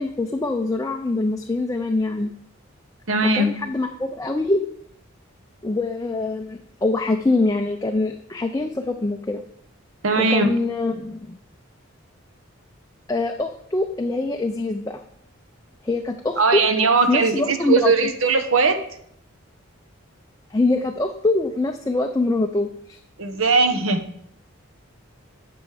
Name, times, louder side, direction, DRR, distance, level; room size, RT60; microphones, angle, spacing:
voice 1, 0.0-2.3 3.2-4.6 5.6-9.4 10.2-11.4 13.1-15.0 15.8-16.6 17.1-18.1 20.5-23.0, left 2 dB, 15° left, 4 dB, 0.4 m, -24 dB
voice 2, 3.1-3.5 10.0-10.5 16.4-18.8 23.2-24.0, right 3 dB, 70° right, 7 dB, 0.9 m, -19 dB
8.5 x 6.1 x 4.9 m, 0.70 s
head